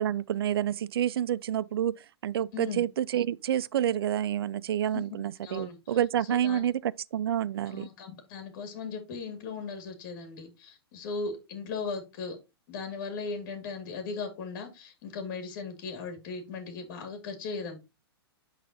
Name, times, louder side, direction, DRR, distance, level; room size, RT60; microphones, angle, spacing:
voice 1, 0.0-7.9, right 10 dB, 65° right, 0.4 m, -29 dB
voice 2, 2.5-2.8 4.9-5.0 5.4-6.0 6.3-6.7 7.7-12.4 12.7-17.8, left 4 dB, 50° left, 2.3 m, -38 dB
12.0 x 4.0 x 2.7 m
hypercardioid pair, 115°, 14 cm